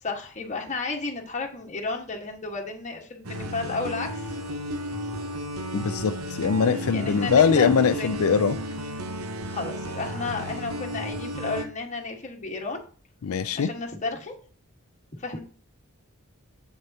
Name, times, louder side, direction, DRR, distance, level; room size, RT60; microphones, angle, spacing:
voice 1, 0.0-4.3 6.9-8.2 9.5-12.8 13.5-14.3 15.2-15.4, left 3 dB, 35° left, 1 dB, 1.5 m, -32 dB
sound 1, 3.2-11.6, equal, 85° right, 0.9 m, -33 dB
voice 2, 5.7-8.6 13.2-13.7, left 6 dB, 85° left, 9 dB, 0.4 m, -22 dB
8.0 x 6.5 x 2.8 m, 0.41 s
head